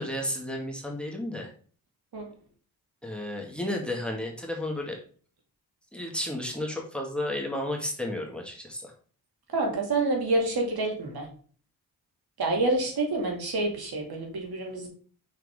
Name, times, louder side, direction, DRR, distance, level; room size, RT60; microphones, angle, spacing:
voice 1, 0.0-1.5 3.0-5.0 5.9-8.9, left 1 dB, ahead, 1 dB, 1.9 m, -32 dB
voice 2, 9.5-11.3 12.4-14.9, right 2 dB, 60° right, 0 dB, 2.5 m, -27 dB
5.7 x 4.7 x 3.7 m, 0.43 s
supercardioid pair, 50°, 41 cm